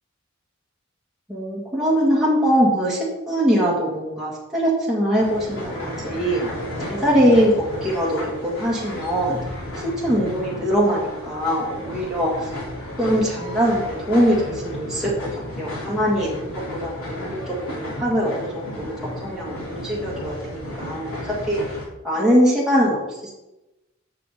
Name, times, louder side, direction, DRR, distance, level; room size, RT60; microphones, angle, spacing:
voice 1, 1.3-9.4 9.8-12.5 13.0-15.3 15.6-18.9 19.2-21.2 21.4-21.6 22.0-23.3, equal, ahead, -7 dB, 1.8 m, -22 dB
sound 1, 5.2-21.9, left 1 dB, 85° left, 3.1 m, -33 dB
7.8 x 4.9 x 6.7 m, 0.99 s
head